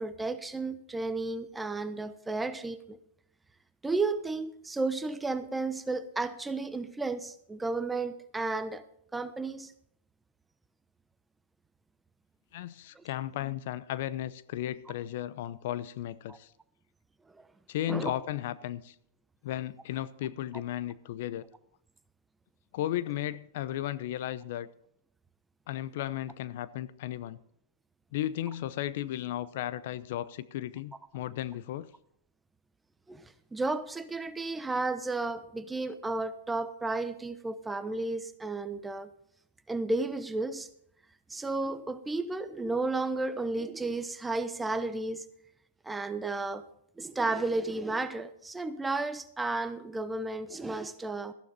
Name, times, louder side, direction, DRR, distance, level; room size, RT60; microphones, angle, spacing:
voice 1, 0.0-3.0 3.8-8.8 9.1-9.7 12.9-13.0 16.3-16.4 17.3-17.4 17.9-18.1 33.1-39.1 39.7-40.7 41.3-45.2 45.8-46.6 47.0-51.3, right 3 dB, 10° right, 1.0 m, -33 dB
voice 2, 12.5-16.5 17.7-18.9 19.4-21.4 22.7-24.7 25.7-27.4 28.1-31.9, left 12 dB, 60° left, 0.7 m, -35 dB
14.5 x 11.5 x 4.2 m
hypercardioid pair, 125°, 0 cm